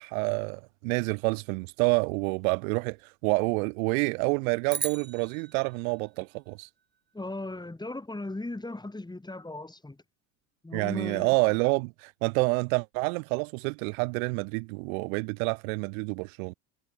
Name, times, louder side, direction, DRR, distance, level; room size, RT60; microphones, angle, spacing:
voice 1, 0.0-6.7 10.7-16.5, right 33 dB, 60° right, 0.5 m, -28 dB
sound 1, 4.7-7.1, right 6 dB, 20° right, 1.2 m, -38 dB
voice 2, 7.1-10.0 10.6-11.3, left 2 dB, 10° left, 2.4 m, -37 dB
hypercardioid pair, 65°, 48 cm